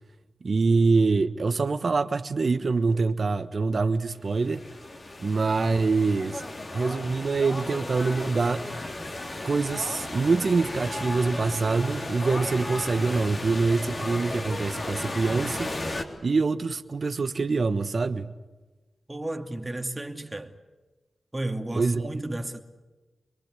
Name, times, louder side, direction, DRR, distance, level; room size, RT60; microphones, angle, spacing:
voice 1, 0.4-4.6 5.2-6.4 6.7-8.6 9.4-15.7 16.2-18.3 21.7-22.1, right 4 dB, 65° right, 1.2 m, -25 dB
sound 1, 4.2-16.0, left 2 dB, 50° left, 3.7 m, -35 dB
voice 2, 19.1-20.6 21.3-22.6, right 1 dB, 25° right, 2.6 m, -33 dB
26.0 x 22.5 x 8.4 m
cardioid pair, 45°, 0 cm